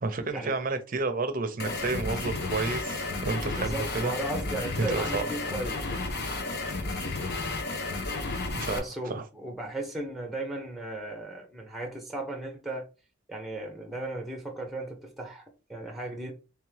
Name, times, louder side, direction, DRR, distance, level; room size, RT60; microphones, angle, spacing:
voice 1, 0.0-4.1 4.9-5.3 8.5-9.2, right 3 dB, 45° right, 0.6 m, -31 dB
sound 1, 1.6-8.8, left 3 dB, 55° left, 0.8 m, -32 dB
voice 2, 3.6-6.1 8.7-12.9 13.3-16.3, right 2 dB, ahead, 0.8 m, -36 dB
3.6 x 3.4 x 3.2 m
head